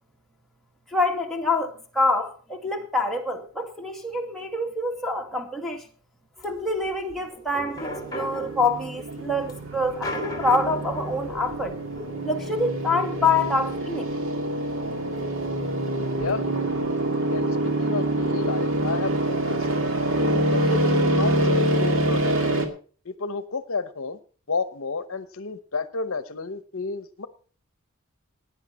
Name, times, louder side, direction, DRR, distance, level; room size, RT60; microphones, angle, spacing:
voice 1, 0.9-5.8 6.4-11.8 12.2-14.1, left 2 dB, ahead, 2.1 m, -26 dB
sound 1, 6.4-15.0 15.3-15.4 15.6-16.3, equal, 15° left, 2.6 m, -38 dB
sound 2, 7.8-22.7, right 1 dB, 60° right, 2.3 m, -26 dB
voice 2, 15.8-16.4 17.3-19.7 20.3-22.4 23.0-24.2 24.5-27.3, left 4 dB, 65° left, 0.8 m, -31 dB
17.0 x 10.0 x 4.2 m
head